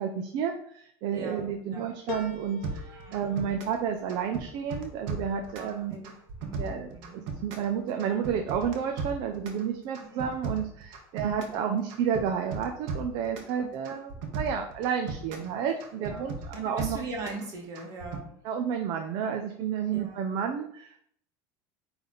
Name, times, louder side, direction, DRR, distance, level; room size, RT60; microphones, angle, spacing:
voice 1, 0.0-2.8 3.1-6.0 6.6-17.0 18.4-21.1, right 7 dB, 55° right, 4 dB, 0.7 m, -31 dB
voice 2, 1.1-1.9 2.8-3.3 5.5-6.1 6.4-7.2 10.1-10.3 11.2-11.5 13.5-13.7 16.0-18.2 19.9-20.2, right 3 dB, 40° right, 1 dB, 1.7 m, -41 dB
sound 1, 2.1-6.8 7.3-8.0 8.4-8.5, left 4 dB, 70° left, 1.3 m, -44 dB
sound 2, 2.6-3.8 4.1-5.7 6.0-7.7 8.0-9.6 9.9-11.6 11.9-13.5 13.9-15.5 15.8-17.4 17.8-18.2, right 4 dB, 70° right, 1.5 m, -36 dB
9.1 x 3.5 x 3.9 m, 0.67 s
cardioid pair, 150°, 9 cm